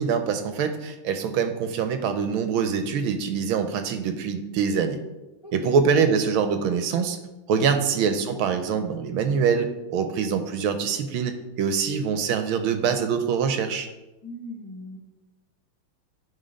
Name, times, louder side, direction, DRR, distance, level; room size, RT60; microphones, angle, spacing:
voice 1, 0.0-5.0 5.5-7.2 7.5-13.9, right 6 dB, 75° right, 7 dB, 1.4 m, -24 dB
voice 2, 7.5-7.8 14.2-15.0, left 1 dB, 20° left, -2 dB, 0.8 m, -39 dB
11.0 x 3.7 x 5.1 m, 1.0 s
omnidirectional pair, 2.4 m